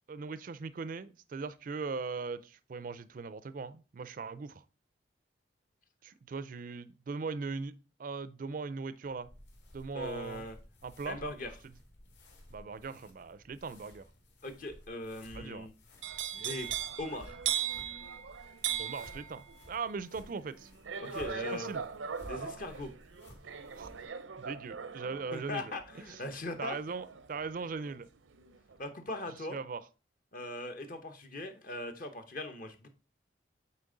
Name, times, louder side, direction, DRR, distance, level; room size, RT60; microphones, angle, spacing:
voice 1, 0.1-4.6 6.0-9.3 9.7-10.4 10.8-11.2 12.5-14.1 15.3-15.7 18.8-20.7 21.5-21.9 23.8-23.9 24.4-25.7 26.0-26.2 26.6-28.1 29.5-29.8, right 4 dB, 45° right, 0.4 m, -39 dB
sound 1, 9.0-24.1, left 1 dB, 65° left, 2.2 m, -55 dB
voice 2, 9.9-10.6 11.1-11.5 14.4-15.7 16.4-16.7 17.0-17.4 21.0-21.7 22.2-22.9 25.3-26.8 28.8-29.6 30.3-32.9, left 2 dB, 45° left, 0.8 m, -40 dB
sound 2, 16.0-28.0 28.3-28.7, right 8 dB, 85° right, 0.6 m, -39 dB
8.3 x 4.3 x 3.8 m
head